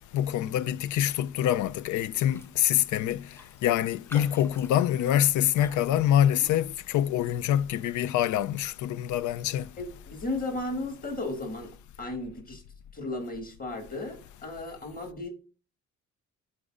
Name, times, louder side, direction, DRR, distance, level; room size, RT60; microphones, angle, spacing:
voice 1, 0.1-3.2 3.6-9.7, left 11 dB, 75° left, 0.5 m, -25 dB
Raindrop, 2.2-2.6 2.9-3.0 3.3-6.9 7.3-7.6, equal, 10° left, 0.6 m, -48 dB
voice 2, 9.8-11.7 12.0-12.6 12.9-15.3, left 2 dB, 30° left, 2.0 m, -35 dB
13.0 x 4.3 x 2.5 m
cardioid pair, 90°, 30 cm